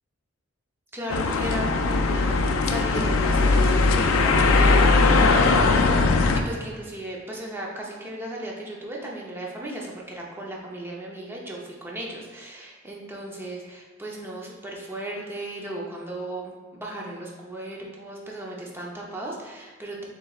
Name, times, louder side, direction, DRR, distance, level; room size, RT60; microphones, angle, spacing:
voice 1, 0.9-20.0, right 1 dB, 10° right, -3 dB, 0.6 m, -36 dB
sound 1, 1.1-6.4, left 3 dB, 70° left, 0.4 m, -19 dB
6.3 x 3.2 x 2.4 m, 1.4 s
head